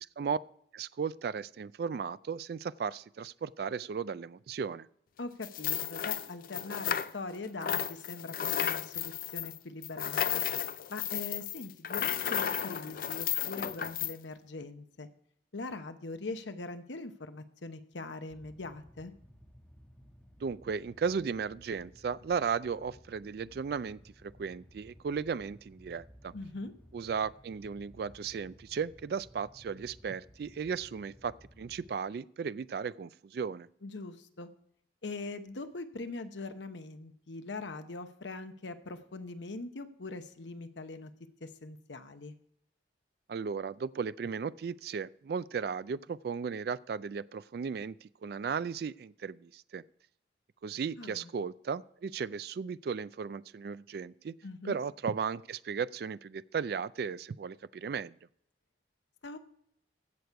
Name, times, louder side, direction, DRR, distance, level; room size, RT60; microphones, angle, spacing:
voice 1, 0.7-4.9 20.4-26.3 26.9-33.7 43.3-49.8 50.6-54.4 54.6-58.2, right 6 dB, 60° right, 17 dB, 0.3 m, -35 dB
voice 2, 5.2-10.4 10.9-15.1 15.5-19.1 26.3-26.7 33.8-34.5 35.0-41.1 41.4-42.3 51.0-51.3 54.4-54.8 59.2-59.4, left 3 dB, 85° left, 9 dB, 0.9 m, -42 dB
sound 1, 5.4-7.4 7.6-14.1, left 9 dB, 50° left, 0.4 m, -33 dB
sound 2, 18.3-31.9, equal, 5° left, 1.2 m, -57 dB
15.5 x 6.7 x 4.6 m, 0.70 s
head